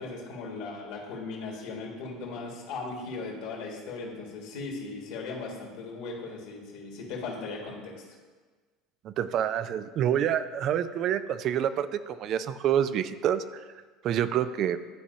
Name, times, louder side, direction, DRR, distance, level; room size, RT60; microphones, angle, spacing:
voice 1, 0.0-8.0, left 3 dB, 70° left, -1 dB, 1.8 m, -38 dB
voice 2, 9.0-13.4 14.0-14.8, right 10 dB, 55° right, 13 dB, 0.3 m, -27 dB
11.5 x 4.2 x 2.7 m, 1.4 s
hypercardioid pair, 85°, 0 cm